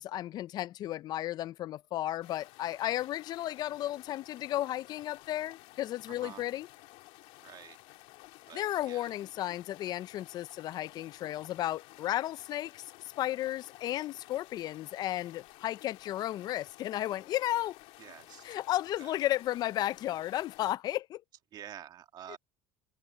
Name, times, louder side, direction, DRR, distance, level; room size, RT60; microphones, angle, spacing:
voice 1, 0.0-6.7 8.5-12.9 13.2-17.8 18.4-21.2 22.3-22.4, left 14 dB, 40° left, 0.4 m, -34 dB
sound 1, 2.2-20.7, left 21 dB, 65° left, 2.8 m, -54 dB
voice 2, 7.4-7.8 8.5-9.1 18.0-18.5 19.0-19.2 21.5-22.4, right 10 dB, 40° right, 2.0 m, -48 dB
cardioid pair, 140°, 11 cm